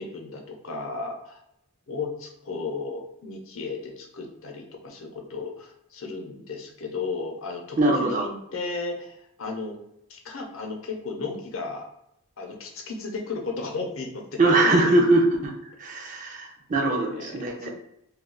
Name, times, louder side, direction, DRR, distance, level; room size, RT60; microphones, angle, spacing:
voice 1, 0.0-1.4 1.9-9.8 10.1-11.9 12.4-15.1 16.8-17.7, left 3 dB, 65° left, 1 dB, 0.6 m, -34 dB
voice 2, 7.8-8.2 14.4-15.5 15.8-17.7, right 2 dB, 35° right, 2 dB, 0.4 m, -21 dB
2.3 x 2.3 x 3.6 m, 0.79 s
head